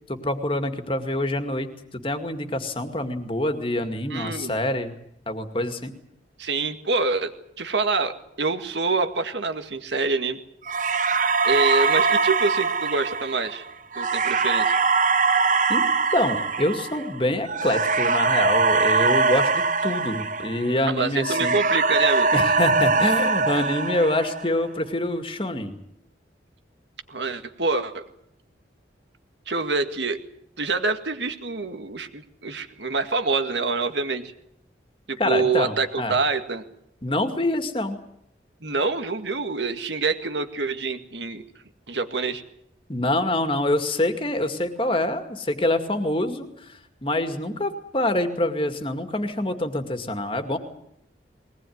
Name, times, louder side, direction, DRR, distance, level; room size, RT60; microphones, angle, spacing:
voice 1, 0.1-4.9 5.3-6.0 15.7-15.9 16.1-21.6 22.3-25.7 35.2-36.2 37.0-38.0 42.9-50.6, left 1 dB, 30° left, 7 dB, 2.2 m, -26 dB
voice 2, 4.1-4.6 6.4-10.4 11.4-13.6 14.0-14.7 20.9-22.3 27.1-28.1 29.5-30.2 30.6-34.3 35.1-36.6 38.6-41.4 41.9-42.4, right 3 dB, 75° right, 8 dB, 2.0 m, -26 dB
sound 1, 10.7-20.9 21.2-24.6, right 4 dB, 45° right, 0.9 m, -22 dB
21.5 x 19.0 x 9.4 m, 0.76 s
head